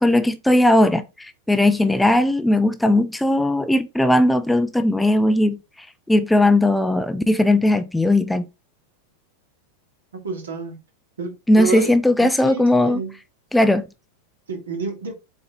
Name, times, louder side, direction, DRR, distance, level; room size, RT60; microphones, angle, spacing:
voice 1, 0.0-5.6 6.1-8.5 11.5-13.0 13.5-13.8, left 1 dB, 5° left, 0.6 m, -18 dB
voice 2, 10.2-10.8 11.2-11.9 12.2-13.1 14.5-15.1, right 3 dB, 65° right, 2.6 m, -29 dB
7.8 x 4.2 x 3.9 m
figure-of-eight pair, 90°, 0 cm